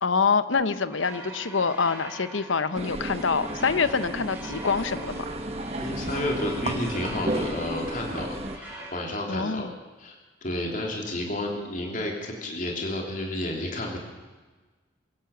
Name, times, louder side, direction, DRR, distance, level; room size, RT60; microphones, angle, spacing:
voice 1, 0.0-5.3 9.3-9.8, left 5 dB, 75° left, 13 dB, 1.0 m, -26 dB
sound 1, 0.9-8.9, right 2 dB, 10° right, 5.4 m, -42 dB
sound 2, 2.7-8.6, right 1 dB, 30° right, 1.3 m, -33 dB
voice 2, 5.8-9.7 10.0-14.0, left 1 dB, 40° left, 0 dB, 3.2 m, -31 dB
23.5 x 16.5 x 7.2 m, 1.3 s
head